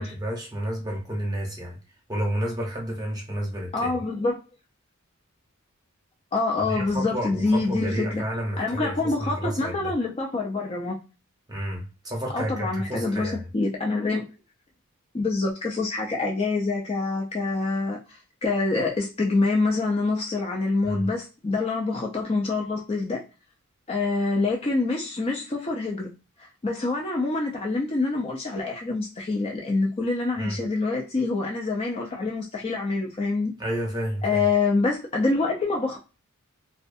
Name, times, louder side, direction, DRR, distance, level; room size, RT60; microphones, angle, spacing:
voice 1, 0.0-1.8 2.1-3.9 6.7-9.9 11.5-13.4 20.8-21.1 30.4-30.6 33.6-34.4, equal, 20° right, 0.8 m, -30 dB
voice 2, 3.7-4.4 6.3-8.2 8.6-11.0 12.3-14.3 15.1-23.2 23.9-26.1 26.6-33.5 34.2-36.0, left 3 dB, 25° left, 0.4 m, -26 dB
2.5 x 2.2 x 2.6 m
head